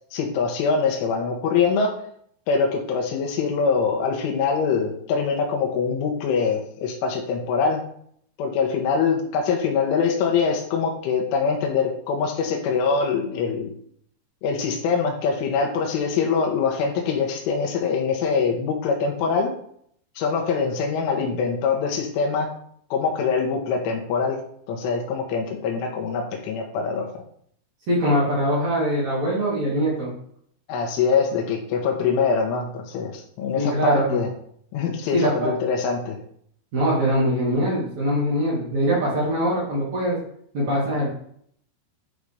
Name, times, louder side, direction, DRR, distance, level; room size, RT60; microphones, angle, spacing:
voice 1, 0.1-1.9 2.5-7.8 8.4-13.7 14.4-19.5 20.2-22.5 22.9-24.4 24.7-27.1 30.7-34.3 34.7-36.2, left 5 dB, 80° left, 1 dB, 3.7 m, -23 dB
voice 2, 27.9-30.1 33.6-34.2 35.1-35.5 36.7-40.2 40.5-41.1, equal, 45° right, -6 dB, 3.0 m, -22 dB
10.0 x 4.0 x 4.9 m, 0.64 s
omnidirectional pair, 5.7 m